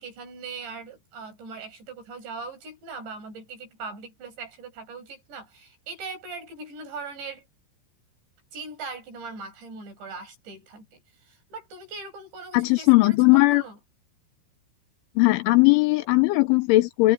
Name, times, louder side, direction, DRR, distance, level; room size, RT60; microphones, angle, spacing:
voice 1, 0.0-7.5 8.5-13.8, right 4 dB, 60° right, 9.5 m, -40 dB
voice 2, 12.5-13.6 15.2-17.1, left 21 dB, 80° left, 3.1 m, -18 dB
omnidirectional pair, 5.9 m